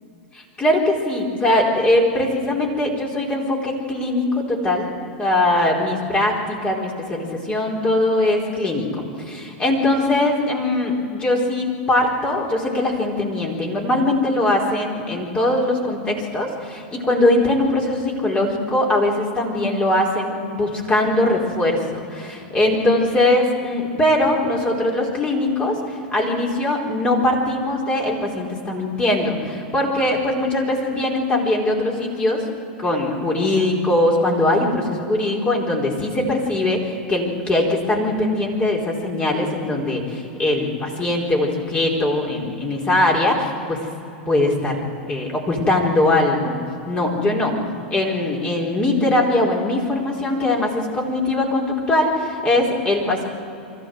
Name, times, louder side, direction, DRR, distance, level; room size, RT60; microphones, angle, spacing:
voice 1, 0.3-32.4 32.8-43.8 44.3-46.6 46.9-47.6 47.9-53.2, left 1 dB, 20° left, -1 dB, 4.5 m, -21 dB
24.0 x 14.5 x 8.0 m, 2.7 s
hypercardioid pair, 110°, 5 cm